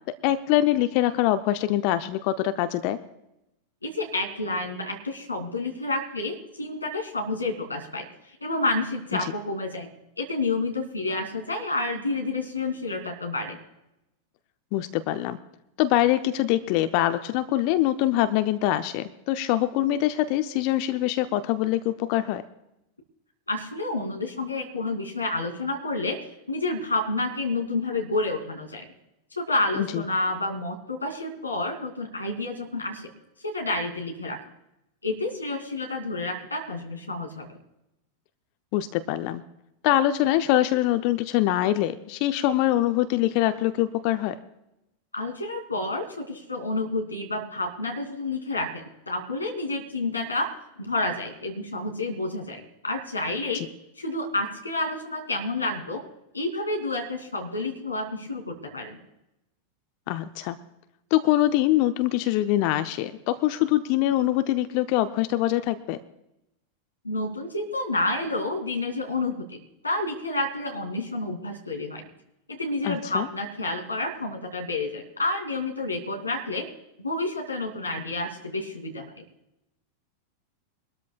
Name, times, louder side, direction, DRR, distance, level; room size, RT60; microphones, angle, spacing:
voice 1, 0.0-3.0 14.7-15.4 15.8-22.4 29.8-30.0 38.7-39.4 39.8-44.4 53.5-53.7 60.1-60.6 61.1-66.0 72.8-73.3, left 14 dB, 45° left, 11 dB, 0.6 m, -24 dB
voice 2, 3.8-9.9 10.2-13.6 23.5-26.2 26.5-28.9 29.4-33.0 33.4-34.4 35.0-37.5 45.1-53.7 54.0-56.0 56.3-59.0 67.0-69.6 69.8-72.0 72.5-76.7 77.0-79.2, left 2 dB, 80° left, 3 dB, 2.7 m, -29 dB
23.5 x 13.0 x 2.3 m, 0.86 s
figure-of-eight pair, 90°, 0 cm